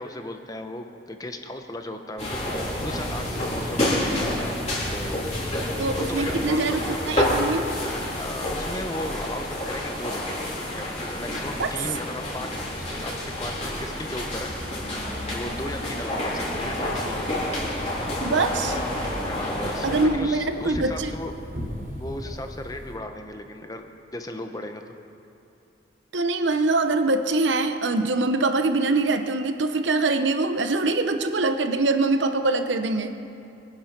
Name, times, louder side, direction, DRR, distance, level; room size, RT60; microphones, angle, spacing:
voice 1, 0.0-2.3 2.8-4.6 4.9-5.7 6.0-6.8 8.1-10.9 11.2-12.5 12.7-13.5 13.8-14.9 15.3-17.3 19.3-21.3 22.0-24.8, left 1 dB, 20° left, 6 dB, 0.9 m, -36 dB
sound 1, 2.2-20.1, left 1 dB, 35° left, 3.7 m, -29 dB
voice 2, 5.8-7.7 11.6-11.7 18.2-18.8 19.8-21.1 26.1-33.2, right 3 dB, 85° right, 7 dB, 0.9 m, -23 dB
sound 2, 16.3-23.0, equal, 50° right, 3.1 m, -39 dB
23.0 x 10.0 x 5.9 m, 2.6 s
head